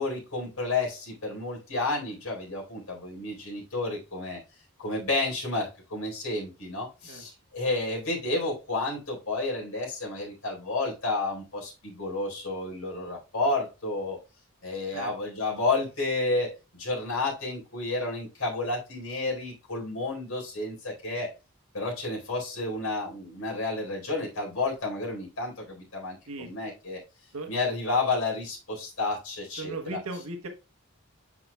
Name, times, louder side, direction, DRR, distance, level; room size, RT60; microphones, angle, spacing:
voice 1, 0.0-4.4 4.8-14.2 14.6-21.3 21.7-27.0 27.5-30.0, left 2 dB, 75° left, -3 dB, 4.2 m, -31 dB
voice 2, 29.6-30.5, right 2 dB, 85° right, 5 dB, 1.3 m, -37 dB
8.5 x 6.0 x 2.2 m, 0.28 s
head